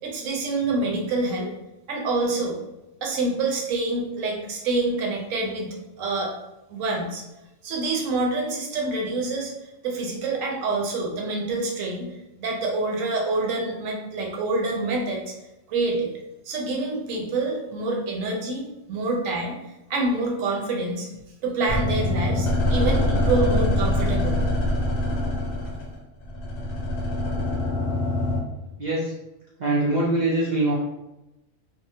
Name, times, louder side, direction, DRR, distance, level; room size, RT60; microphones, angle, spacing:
voice 1, 0.0-1.5 1.9-2.6 3.0-6.3 6.7-7.2 7.6-9.5 9.8-12.1 12.4-15.2 15.7-16.1 16.5-19.5 19.9-21.1 21.4-24.5, right 2 dB, 80° right, 0 dB, 1.0 m, -26 dB
sound 1, 21.7-28.4, left 1 dB, 85° left, 1.0 m, -24 dB
voice 2, 28.8-29.1 29.6-30.7, right 2 dB, 60° right, -6 dB, 0.4 m, -23 dB
2.7 x 2.0 x 2.7 m, 0.94 s
omnidirectional pair, 1.4 m